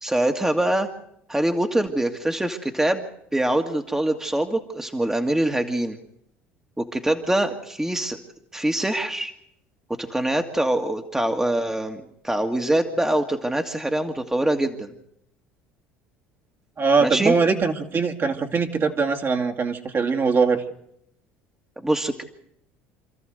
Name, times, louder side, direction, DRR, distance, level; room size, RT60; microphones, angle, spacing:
voice 1, 0.0-0.9 1.3-3.1 3.3-6.0 6.8-8.2 8.5-9.3 9.9-14.9 17.0-17.3 21.8-22.2, right 1 dB, 10° right, 4 dB, 1.9 m, -24 dB
voice 2, 16.8-20.6, right 4 dB, 40° right, 3 dB, 2.5 m, -22 dB
27.0 x 13.5 x 8.0 m, 0.76 s
hypercardioid pair, 75°, 6 cm